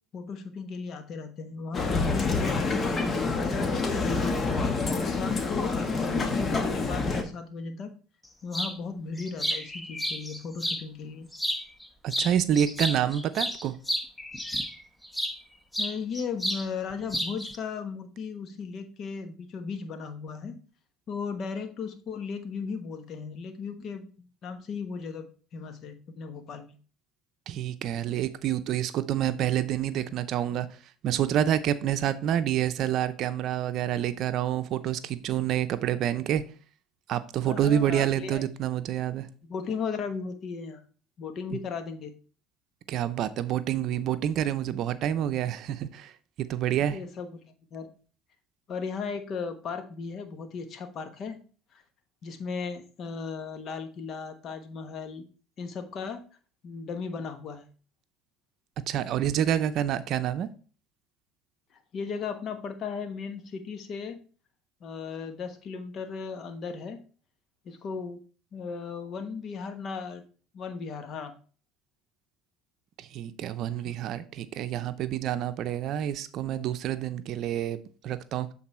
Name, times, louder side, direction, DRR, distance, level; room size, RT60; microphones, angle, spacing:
voice 1, 0.1-4.2 4.9-5.9 6.2-8.0 8.4-11.3 15.8-20.6 21.1-24.0 24.4-25.3 25.5-26.7 37.4-38.4 39.4-40.8 41.2-42.1 46.9-47.4 47.7-47.9 48.7-51.4 51.7-51.8 52.2-55.2 55.6-56.2 56.6-57.6 61.9-64.2 64.8-67.0 67.6-68.2 68.5-70.2 70.5-71.3 73.8-73.9, left 5 dB, 50° left, 1.2 m, -36 dB
Male speech man speaking, 1.7-7.2, left 3 dB, 35° left, 1.2 m, -27 dB
sound 1, 8.5-8.8 9.2-10.8 11.3-11.9 12.1-15.4 15.7-16.7 16.9-17.6, equal, 10° left, 1.0 m, -31 dB
voice 2, 12.0-13.8 27.5-30.7 31.0-36.4 37.1-39.3 41.5-41.6 42.9-46.1 46.4-47.0 58.9-60.5 73.0-78.5, right 10 dB, 60° right, 0.6 m, -28 dB
7.7 x 3.9 x 4.3 m
hypercardioid pair, 75°, 0 cm